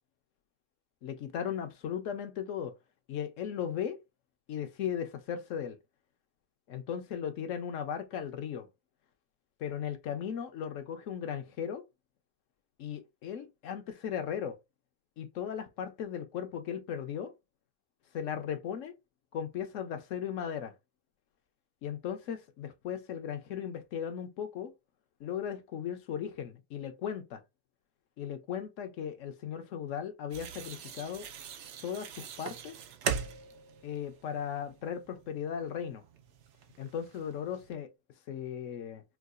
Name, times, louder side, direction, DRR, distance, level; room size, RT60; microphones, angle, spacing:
voice 1, 1.0-2.7 3.1-4.0 4.5-5.8 6.7-8.7 9.6-11.8 12.8-14.6 15.2-17.3 18.1-19.0 19.3-20.7 21.8-24.7 25.2-27.4 28.2-31.3 31.8-32.7 33.8-36.0 36.8-37.9 38.3-39.0, left 8 dB, 65° left, 0.9 m, -37 dB
sound 1, 30.3-37.7, right 7 dB, 65° right, 0.7 m, -41 dB
4.6 x 2.3 x 2.3 m
omnidirectional pair, 1.6 m